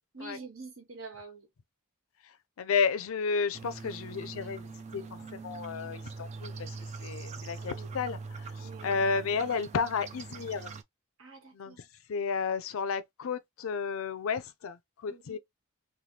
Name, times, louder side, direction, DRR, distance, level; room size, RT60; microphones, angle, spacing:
voice 1, 0.1-1.5 7.6-7.9 8.6-9.0 11.2-11.9 15.1-15.4, right 4 dB, 70° right, 1.3 m, -47 dB
voice 2, 2.6-10.7 11.5-11.7 12.1-15.4, left 5 dB, 65° left, 0.4 m, -32 dB
sound 1, 3.5-10.8, right 4 dB, 30° right, 0.3 m, -42 dB
3.2 x 2.2 x 2.7 m
head